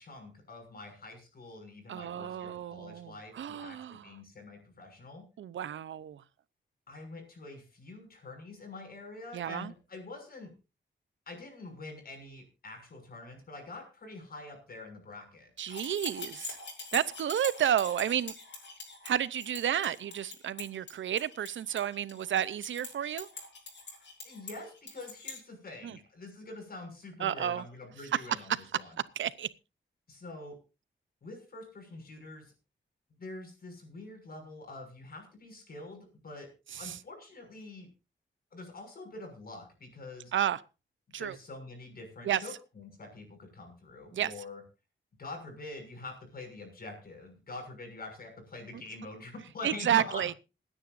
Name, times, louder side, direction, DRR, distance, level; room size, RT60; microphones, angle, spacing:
voice 1, 0.0-5.2 6.9-10.5 11.3-15.5 24.2-28.9 30.1-30.5 31.2-32.5 33.2-36.5 36.7-37.9 38.5-40.3 41.2-44.6 45.2-50.2, left 2 dB, 50° left, 6.5 m, -45 dB
voice 2, 1.9-4.1 5.4-6.2 9.3-9.7 15.6-16.6 16.9-18.3 19.0-23.3 25.8-26.0 27.2-27.6 29.2-29.5 36.7-37.0 40.3-40.6 41.1-41.4 42.2-42.4 44.1-44.3 49.6-50.3, right 10 dB, 90° right, 0.7 m, -31 dB
sound 1, 15.6-25.4, left 4 dB, 70° left, 5.9 m, -44 dB
27.5 x 10.0 x 2.6 m
wide cardioid pair, 130°, 19 cm